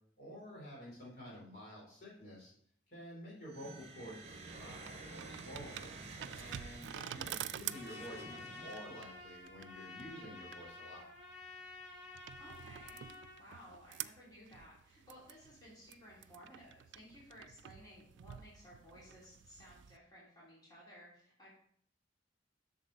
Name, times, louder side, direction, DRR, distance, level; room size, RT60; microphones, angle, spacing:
voice 1, 0.2-2.5 2.9-5.9 6.3-11.1, equal, 55° left, -4 dB, 3.7 m, -50 dB
sound 1, 3.4-9.1, right 3 dB, 40° right, 1.0 m, -51 dB
sound 2, 4.3-20.0, right 11 dB, 80° right, 0.3 m, -49 dB
Trumpet, 7.6-13.4, left 3 dB, 85° left, 3.1 m, -51 dB
voice 2, 9.6-10.0 12.4-13.1 13.4-21.5, equal, 25° left, -8 dB, 2.9 m, -57 dB
8.1 x 6.7 x 3.9 m, 0.63 s
head